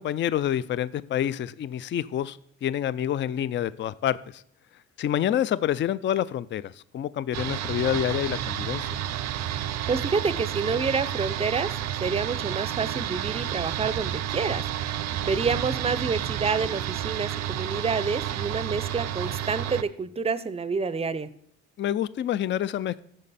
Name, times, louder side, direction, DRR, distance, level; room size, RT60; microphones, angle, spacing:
voice 1, 0.0-4.4 5.0-8.9 21.8-23.0, left 10 dB, 40° left, 17 dB, 0.4 m, -27 dB
sound 1, 7.3-19.8, right 11 dB, 60° right, 0.6 m, -30 dB
voice 2, 9.9-11.7 12.0-14.6 15.2-21.3, right 5 dB, 20° right, 15 dB, 0.5 m, -28 dB
14.0 x 5.1 x 4.1 m, 0.71 s
cardioid pair, 90°, 30 cm